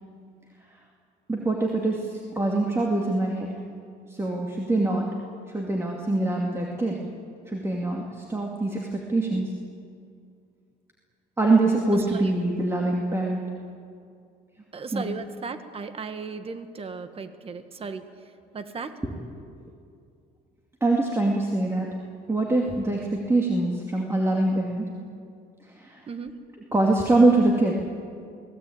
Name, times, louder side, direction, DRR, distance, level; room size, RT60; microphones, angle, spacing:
voice 1, 1.3-3.5 4.1-5.1 5.5-7.0 7.5-9.5 11.4-13.4 14.9-15.1 19.4-19.5 20.8-22.0 22.3-24.9 25.7-26.0 26.7-27.8, right 2 dB, 15° right, -1 dB, 2.5 m, -24 dB
voice 2, 14.7-18.0 18.5-18.9 26.1-26.3, right 4 dB, 35° right, 9 dB, 1.7 m, -36 dB
24.5 x 18.5 x 8.8 m, 2.4 s
cardioid pair, 110°, 17 cm